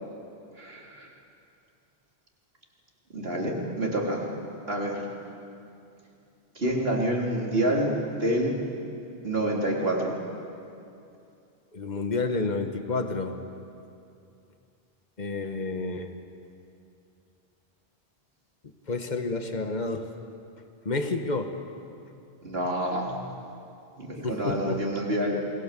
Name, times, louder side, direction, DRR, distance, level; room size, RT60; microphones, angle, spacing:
voice 1, 0.6-1.1 3.1-4.2 4.7-5.0 6.6-8.6 9.2-10.2 22.4-23.2 24.0-25.4, right 1 dB, 70° right, -2 dB, 3.9 m, -27 dB
voice 2, 11.7-13.4 15.2-16.1 18.9-20.1 20.8-21.5 24.2-24.8, left 3 dB, 45° left, 6 dB, 1.6 m, -29 dB
27.5 x 22.0 x 7.7 m, 2.6 s
omnidirectional pair, 1.0 m